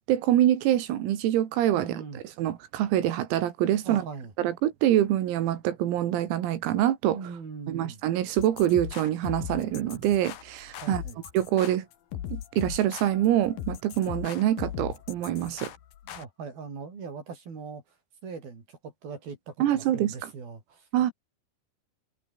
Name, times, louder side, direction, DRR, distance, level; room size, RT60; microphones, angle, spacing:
voice 1, 0.1-2.0 2.4-4.0 4.4-7.2 7.7-11.0 11.3-11.9 12.3-15.7 19.6-20.1 20.9-21.1, right 12 dB, 90° right, 5.0 m, -25 dB
voice 2, 1.8-2.2 3.8-4.3 7.1-8.0 10.8-11.2 16.0-18.0 18.2-21.1, right 5 dB, 45° right, 7.5 m, -41 dB
sound 1, 8.4-16.2, left 11 dB, 60° left, 2.7 m, -38 dB
omnidirectional pair, 6.0 m